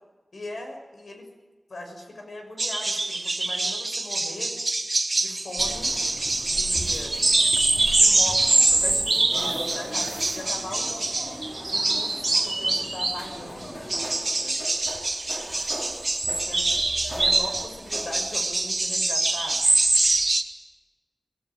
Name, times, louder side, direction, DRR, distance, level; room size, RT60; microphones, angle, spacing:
voice 1, 0.3-1.3 1.7-4.5 5.2-5.9 6.4-7.2 8.0-11.2 11.7-14.1 14.4-14.5 16.3-16.7 17.1-19.6, left 1 dB, 70° left, 4 dB, 6.4 m, -39 dB
sound 1, 2.6-13.4 13.9-20.4, right 2 dB, 40° right, 2.2 m, -24 dB
sound 2, 5.6-14.2, equal, 35° left, 7.1 m, -42 dB
sound 3, 5.6-20.3, equal, 15° left, 3.2 m, -41 dB
23.5 x 22.0 x 9.2 m, 1.2 s
wide cardioid pair, 80°, 0 cm